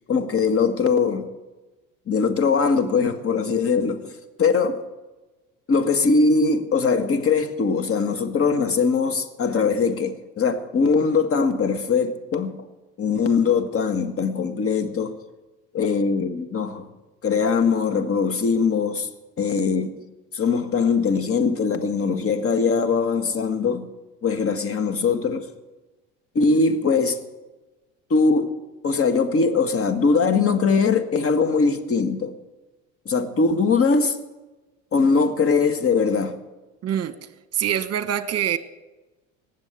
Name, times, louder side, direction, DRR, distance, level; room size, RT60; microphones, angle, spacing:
voice 1, 0.1-1.3 2.1-4.1 4.4-4.8 5.7-12.6 13.0-15.1 15.7-16.9 17.2-19.1 19.4-19.9 20.3-23.9 24.2-25.4 26.3-27.2 28.1-28.5 28.8-32.3 33.0-34.2 34.9-36.4, left 4 dB, 40° left, 1.7 m, -21 dB
voice 2, 36.8-38.6, right 10 dB, 40° right, 1.2 m, -25 dB
18.5 x 7.5 x 8.2 m
hypercardioid pair, 75°, 36 cm